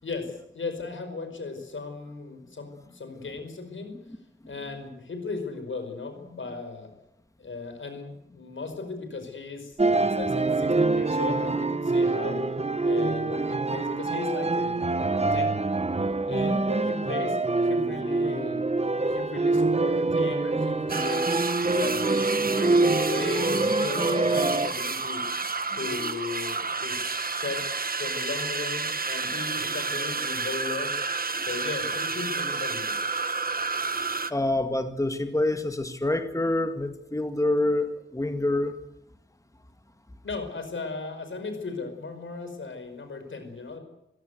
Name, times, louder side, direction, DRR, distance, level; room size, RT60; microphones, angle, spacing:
voice 1, 0.0-4.0 4.5-6.9 7.4-12.4 12.8-15.6 16.3-18.6 18.9-21.3 21.7-25.2 25.7-27.6 28.0-31.1 31.4-32.9 40.2-43.8, left 4 dB, 90° left, 7 dB, 5.1 m, -36 dB
sound 1, 9.8-24.7, right 3 dB, 35° right, 1.0 m, -25 dB
voice 2, 16.3-16.6 26.0-26.2 34.3-38.8, left 1 dB, 15° left, 7 dB, 1.9 m, -27 dB
sound 2, 20.9-34.3, right 4 dB, 50° right, 1.3 m, -30 dB
25.5 x 16.5 x 8.1 m, 0.85 s
wide cardioid pair, 70°, 19 cm